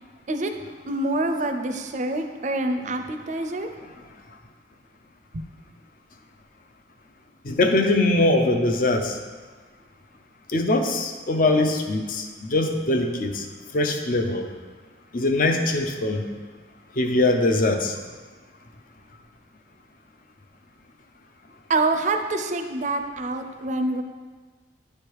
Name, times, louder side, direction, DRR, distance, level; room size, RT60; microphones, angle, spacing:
voice 1, 0.9-3.7 21.7-24.0, right 2 dB, 40° right, 6 dB, 0.4 m, -26 dB
voice 2, 7.4-9.1 10.5-13.5 13.7-14.4 15.1-16.2 17.0-17.9, left 2 dB, 45° left, 5 dB, 0.5 m, -22 dB
9.4 x 3.3 x 4.6 m, 1.4 s
head